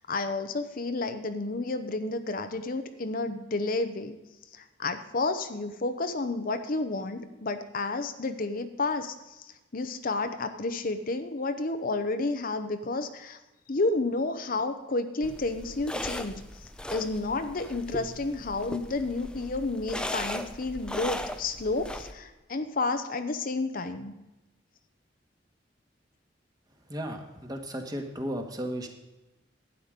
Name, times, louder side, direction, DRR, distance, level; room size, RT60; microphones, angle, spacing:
voice 1, 0.0-4.2 4.5-13.4 13.7-16.4 16.9-24.1, left 3 dB, 50° left, 8 dB, 0.8 m, -31 dB
sound 1, 15.2-22.1, left 1 dB, 5° left, 0.7 m, -38 dB
voice 2, 26.9-28.9, equal, 20° right, 4 dB, 1.6 m, -34 dB
12.5 x 9.1 x 5.2 m, 1.0 s
head